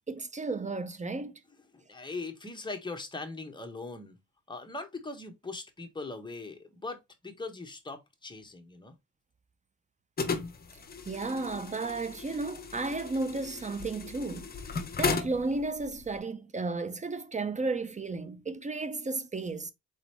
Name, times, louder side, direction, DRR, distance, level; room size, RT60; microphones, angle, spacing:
voice 1, 0.1-1.3 11.0-19.7, right 3 dB, 25° right, 0.6 m, -33 dB
voice 2, 1.7-4.2 4.5-8.9, left 3 dB, 15° left, 1.3 m, -40 dB
sound 1, 10.2-16.2, left 5 dB, 30° left, 1.0 m, -36 dB
4.1 x 4.0 x 3.2 m
cardioid pair, 90°, 30 cm